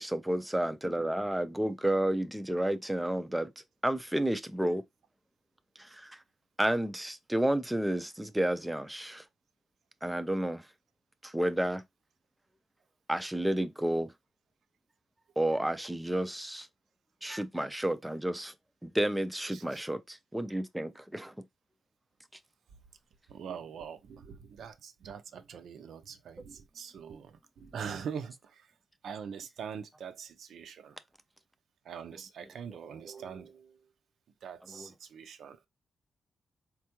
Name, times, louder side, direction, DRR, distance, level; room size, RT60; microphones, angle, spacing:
voice 1, 0.0-3.5 3.8-4.8 5.8-6.2 6.6-9.2 10.0-10.7 11.2-11.8 13.1-14.1 15.4-16.7 17.2-18.5 18.8-21.3 34.7-34.9, right 1 dB, 5° right, 0.3 m, -31 dB
voice 2, 23.3-28.7 29.0-31.0 31.8-33.8 34.4-35.6, right 7 dB, 70° right, 0.4 m, -43 dB
4.3 x 2.3 x 2.9 m
wide cardioid pair, 170°, 0 cm